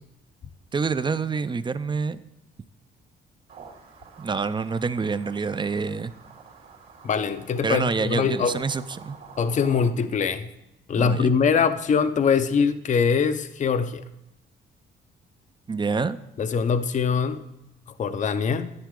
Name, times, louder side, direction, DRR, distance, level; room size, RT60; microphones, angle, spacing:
voice 1, 0.7-2.2 4.2-6.1 7.6-9.2 10.9-11.3 15.7-16.2, right 4 dB, 25° right, 14 dB, 0.5 m, -27 dB
sound 1, 3.5-9.9, right 5 dB, 90° right, 2.7 m, -47 dB
voice 2, 7.0-8.5 9.4-10.5 10.9-14.0 16.4-17.4 18.0-18.7, left 6 dB, 40° left, 11 dB, 0.6 m, -23 dB
10.5 x 10.0 x 3.7 m, 0.89 s
cardioid pair, 90°, 20 cm